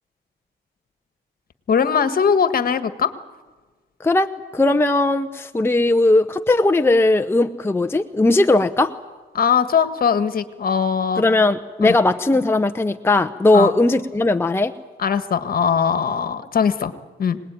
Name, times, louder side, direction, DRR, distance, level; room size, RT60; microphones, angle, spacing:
voice 1, 1.7-3.1 9.3-11.2 11.8-12.0 13.5-13.7 15.0-16.9 17.2-17.4, left 6 dB, 45° left, 10 dB, 1.7 m, -20 dB
voice 2, 4.0-8.9 11.2-14.7, left 2 dB, 10° left, 6 dB, 0.8 m, -18 dB
26.0 x 19.5 x 9.2 m, 1.3 s
cardioid pair, 90°, 20 cm